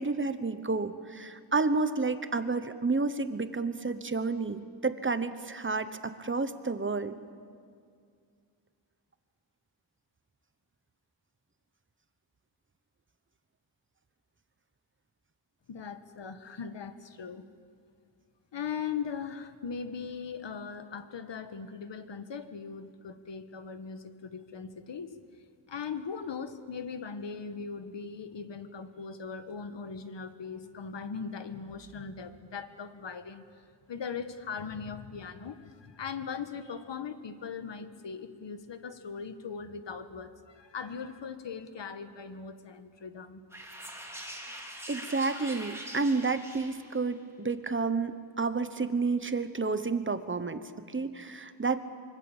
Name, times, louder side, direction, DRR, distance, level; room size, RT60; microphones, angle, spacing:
voice 1, 0.0-7.2 44.9-51.8, right 4 dB, 25° right, 11 dB, 1.1 m, -30 dB
voice 2, 15.7-17.4 18.5-25.2 25.7-43.4, left 6 dB, 65° left, 10 dB, 1.5 m, -39 dB
sound 1, 43.5-47.1, right 1 dB, 5° right, 3.1 m, -43 dB
25.5 x 24.0 x 7.3 m, 2.2 s
wide cardioid pair, 140°, 47 cm